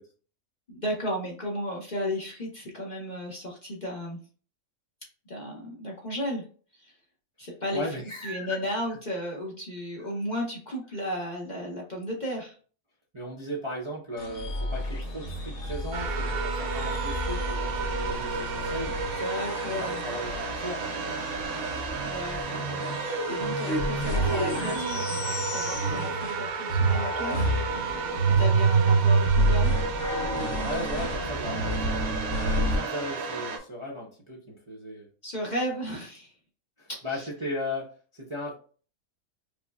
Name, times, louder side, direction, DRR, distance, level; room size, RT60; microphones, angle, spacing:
voice 1, 0.7-4.2 5.3-6.4 6.7-6.9 7.4-7.9 8.2-12.6 19.2-20.0 22.0-23.0 23.3-27.5 27.8-27.9 28.4-29.7 30.4-31.1 35.2-36.3 36.9-37.3, equal, 40° left, -2 dB, 0.8 m, -34 dB
voice 2, 7.7-8.6 8.9-9.0 13.1-18.9 19.4-21.1 30.6-35.1 36.8-38.5, left 1 dB, 30° right, -4 dB, 0.6 m, -37 dB
sound 1, 14.2-26.4 26.7-32.8, right 2 dB, 65° left, 1.2 m, -28 dB
sound 2, 15.9-33.6, right 4 dB, 85° right, 1.1 m, -33 dB
5.1 x 2.1 x 2.3 m, 0.40 s
omnidirectional pair, 1.4 m